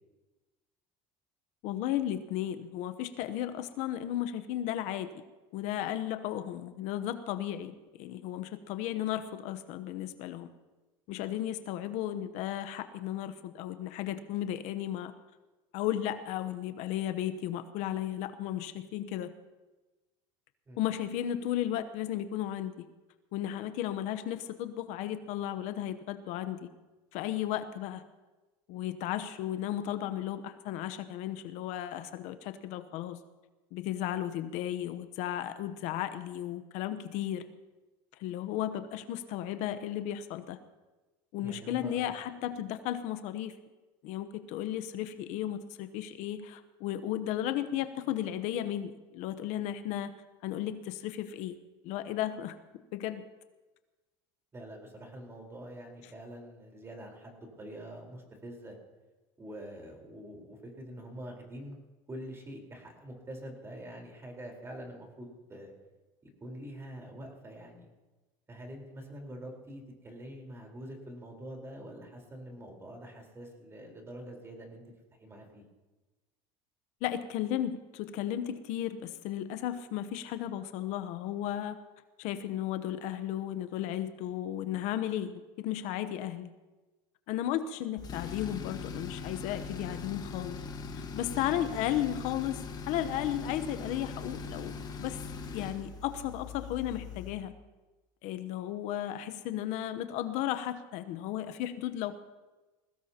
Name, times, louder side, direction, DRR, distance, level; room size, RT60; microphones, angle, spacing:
voice 1, 1.6-5.1 5.5-10.5 11.1-15.1 15.7-19.3 20.8-22.9 23.3-26.7 27.1-28.0 28.7-33.2 33.7-37.5 38.2-40.6 41.3-43.5 44.0-50.1 50.4-51.6 51.8-53.2 77.0-81.8 82.2-86.5 87.3-90.6 90.9-95.3 95.5-97.5 98.2-102.1, left 12 dB, 65° left, 10 dB, 0.9 m, -34 dB
voice 2, 41.4-42.1 54.5-58.8 59.4-61.8 62.1-65.7 66.4-67.9 68.5-74.8 75.2-75.6, right 1 dB, 20° right, 1 dB, 4.1 m, -45 dB
Tools, 88.0-97.5, left 5 dB, 30° left, 1.5 m, -41 dB
21.5 x 17.5 x 2.9 m, 1.2 s
supercardioid pair, 120°, 13 cm